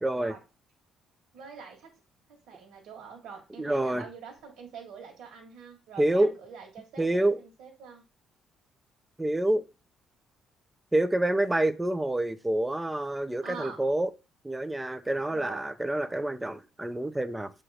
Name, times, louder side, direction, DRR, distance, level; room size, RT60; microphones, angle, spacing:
voice 1, 0.0-0.3 3.6-4.0 6.0-6.3 7.0-7.4 9.2-9.6 10.9-14.1 14.4-17.5, right 1 dB, 10° right, 0.5 m, -27 dB
voice 2, 1.3-1.9 2.3-8.0 13.4-13.8 15.3-15.6, right 6 dB, 75° right, 1.7 m, -45 dB
7.6 x 2.9 x 4.9 m
cardioid pair, 145°, 0 cm